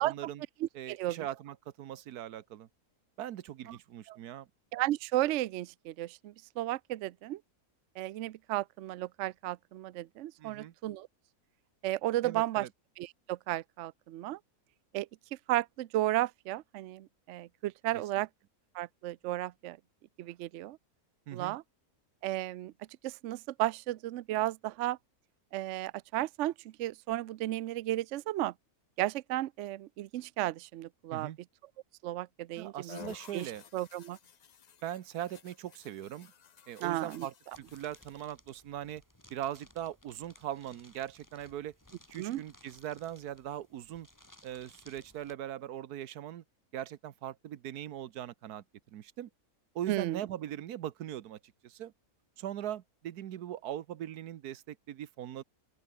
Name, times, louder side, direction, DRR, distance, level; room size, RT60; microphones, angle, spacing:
voice 1, 0.0-0.4 0.7-2.7 3.2-4.5 10.4-10.7 12.2-12.7 17.9-18.3 21.3-21.6 31.1-31.4 32.5-33.6 34.8-36.3 36.7-39.0 39.3-41.7 42.1-44.1 44.4-46.4 46.7-48.6 48.9-49.3 49.7-51.9 52.4-55.4, right 11 dB, 85° right, 1.4 m, -40 dB
voice 2, 0.6-1.3 3.7-3.8 4.1-4.2 4.7-7.4 8.0-11.1 11.8-12.7 13.0-14.4 14.9-15.1 15.5-18.3 18.7-19.8 20.2-20.8 21.3-21.6 22.2-22.7 23.0-25.0 25.5-26.5 26.8-28.5 29.0-31.3 32.0-33.0 33.3-34.2 36.8-37.3 42.2-42.4 49.9-50.2, right 15 dB, 65° right, 0.7 m, -34 dB
sound 1, 32.9-38.3, left 7 dB, 55° left, 0.4 m, -53 dB
sound 2, 37.5-45.3, left 1 dB, 10° left, 2.9 m, -60 dB
open air
omnidirectional pair, 1.6 m